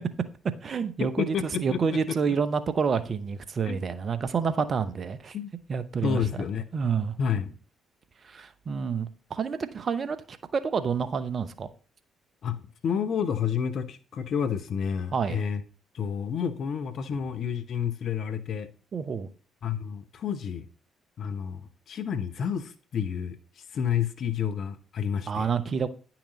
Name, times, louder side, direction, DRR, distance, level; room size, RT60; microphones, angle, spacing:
voice 1, 0.6-5.4 5.7-6.2 6.7-7.1 8.3-10.2 10.5-11.7 15.1-15.4 18.9-19.3 25.3-25.9, right 6 dB, 45° right, 0.9 m, -28 dB
voice 2, 1.2-2.4 3.6-3.8 5.3-5.5 6.0-6.6 7.2-7.5 12.4-15.6 15.9-18.7 19.6-20.7 21.2-23.4 23.7-25.5, left 7 dB, 55° left, 0.8 m, -30 dB
10.0 x 5.9 x 4.0 m
hypercardioid pair, 45°, 0 cm